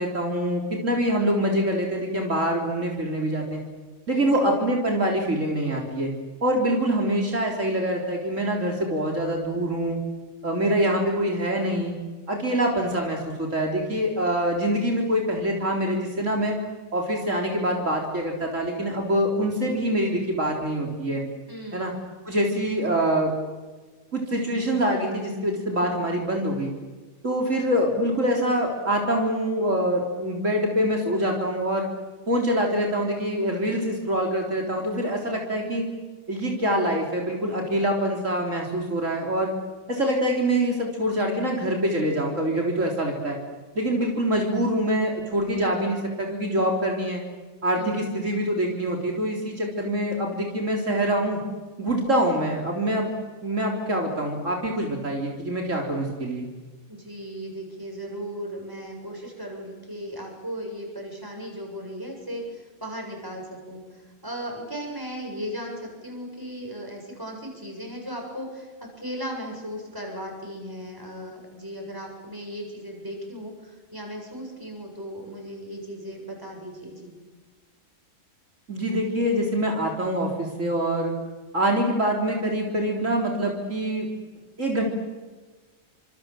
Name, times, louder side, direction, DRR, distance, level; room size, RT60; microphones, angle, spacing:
voice 1, 0.0-3.6 4.1-6.1 6.4-10.0 10.4-11.9 12.3-16.6 16.9-21.2 21.7-21.9 22.3-23.3 24.1-26.7 27.2-31.9 32.3-35.9 36.3-39.5 39.9-43.4 43.8-47.2 47.6-51.4 51.8-53.1 53.4-56.5 78.7-81.1 81.5-84.1 84.6-84.8, right 1 dB, 60° right, 0 dB, 4.1 m, -25 dB
voice 2, 21.5-22.0 47.7-48.1 56.9-77.1, equal, 15° right, 1 dB, 7.4 m, -37 dB
28.5 x 26.0 x 7.7 m, 1.3 s
omnidirectional pair, 1.5 m